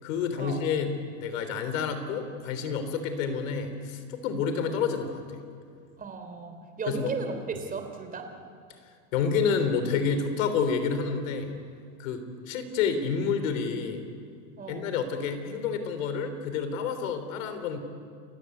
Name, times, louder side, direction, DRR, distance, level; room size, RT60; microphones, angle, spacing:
voice 1, 0.0-5.4 6.9-7.1 8.8-11.5 12.0-14.0 14.7-17.8, left 6 dB, 65° left, 9 dB, 3.6 m, -29 dB
voice 2, 6.0-8.3 14.6-14.9, right 5 dB, 20° right, 6 dB, 3.3 m, -36 dB
29.0 x 14.5 x 9.7 m, 2.2 s
supercardioid pair, 130°, 42 cm